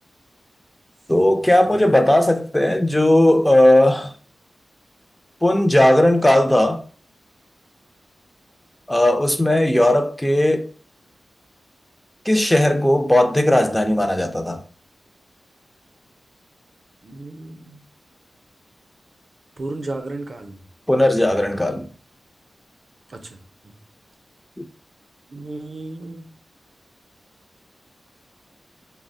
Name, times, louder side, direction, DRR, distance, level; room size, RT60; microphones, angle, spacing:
voice 1, 1.1-4.1 5.4-6.8 8.9-10.7 12.3-14.6 20.9-21.9 24.6-24.7, left 1 dB, 10° left, 0.3 m, -17 dB
voice 2, 17.0-17.8 19.6-20.6 23.1-23.2 23.6-23.7 25.3-26.3, right 2 dB, 55° right, 0.4 m, -33 dB
2.3 x 2.0 x 3.7 m
cardioid pair, 60°, 0 cm